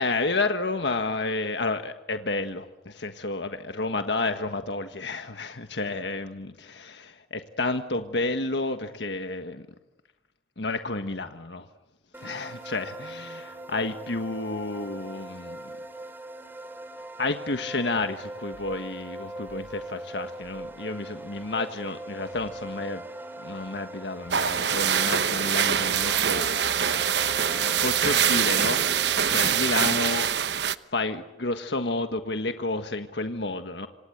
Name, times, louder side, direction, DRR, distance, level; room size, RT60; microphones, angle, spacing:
voice 1, 0.0-9.6 10.6-11.6 12.2-15.7 17.2-23.1 23.4-26.4 27.8-28.8 29.3-30.3 30.9-33.9, left 3 dB, 75° left, 7 dB, 1.5 m, -30 dB
sound 1, 12.1-29.9, right 1 dB, 10° right, 3.3 m, -41 dB
sound 2, 18.5-18.8 19.5-19.7 20.4-20.7 22.3-22.6 24.2-24.8, equal, 50° right, 7.6 m, -55 dB
sound 3, 24.3-30.8, right 8 dB, 70° right, 1.0 m, -24 dB
27.0 x 27.0 x 8.1 m, 0.98 s
head